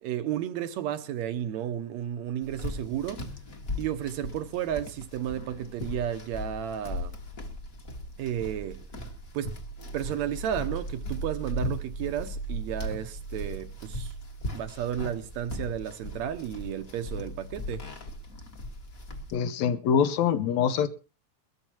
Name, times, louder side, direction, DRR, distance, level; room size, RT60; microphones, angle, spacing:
voice 1, 0.0-3.3 3.8-7.2 8.2-8.8 9.3-9.6 9.9-14.1 14.5-17.9, right 10 dB, 75° right, 2.0 m, -33 dB
sound 1, 2.4-19.4, equal, 35° left, 1.7 m, -37 dB
voice 2, 19.3-20.9, left 7 dB, 75° left, 2.1 m, -24 dB
22.0 x 13.5 x 2.9 m
omnidirectional pair, 3.3 m